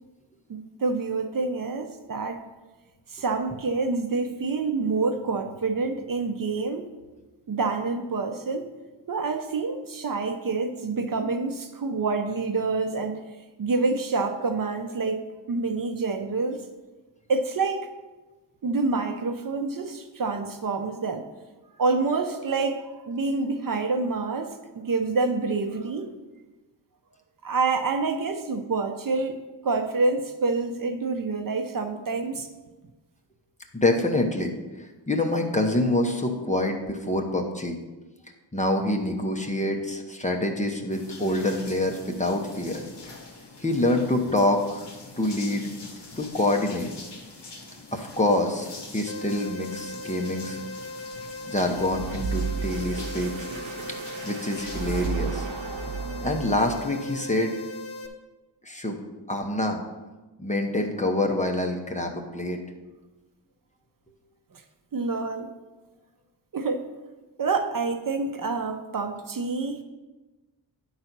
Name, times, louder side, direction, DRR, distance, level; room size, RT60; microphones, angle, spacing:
voice 1, 0.5-2.4 3.1-6.9 7.5-8.7 9.1-13.2 13.6-15.2 15.5-16.6 17.3-17.9 18.6-21.3 21.8-26.1 27.4-32.5 55.2-55.3 64.5-64.6 64.9-65.5 66.5-66.9 67.4-69.8, right 3 dB, 50° right, 6 dB, 0.6 m, -27 dB
voice 2, 33.7-37.8 38.5-42.8 43.6-44.8 45.2-45.7 46.2-46.9 47.9-50.6 51.5-53.3 54.2-55.5 56.2-57.5 58.6-59.0 59.3-59.8 60.4-62.6, left 1 dB, 15° left, 2 dB, 0.7 m, -26 dB
sound 1, 40.9-55.1, left 3 dB, 65° left, 1.4 m, -44 dB
sound 2, 49.1-58.1, left 2 dB, 85° left, 1.0 m, -39 dB
sound 3, 51.8-57.0, right 5 dB, 90° right, 0.7 m, -33 dB
10.0 x 4.0 x 5.9 m, 1.2 s
wide cardioid pair, 165°, 45 cm